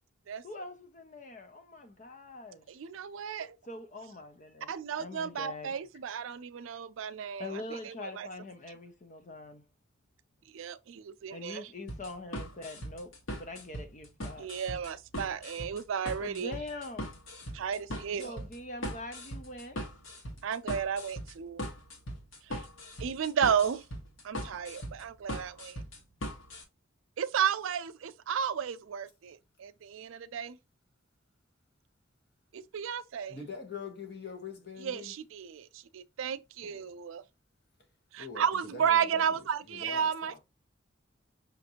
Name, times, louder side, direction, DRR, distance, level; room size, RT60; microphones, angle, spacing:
voice 1, 0.4-2.7 3.7-4.7 5.0-5.7 7.4-9.6 11.3-14.5 16.2-17.2 18.2-19.8, left 2 dB, 40° left, 0.4 m, -43 dB
voice 2, 2.7-3.6 4.7-8.3 10.5-11.7 14.4-16.6 17.5-18.4 20.4-21.6 22.4-22.7 23.0-23.9 24.2-25.8 27.2-30.6 32.5-33.4 34.8-37.2 38.1-40.4, right 7 dB, 85° right, 0.4 m, -33 dB
sound 1, 11.9-26.6, equal, 85° left, 1.2 m, -40 dB
voice 3, 33.3-35.1 36.6-36.8 38.2-38.4 38.7-39.0 39.8-40.1, left 5 dB, 55° left, 1.1 m, -42 dB
5.6 x 2.6 x 2.8 m
head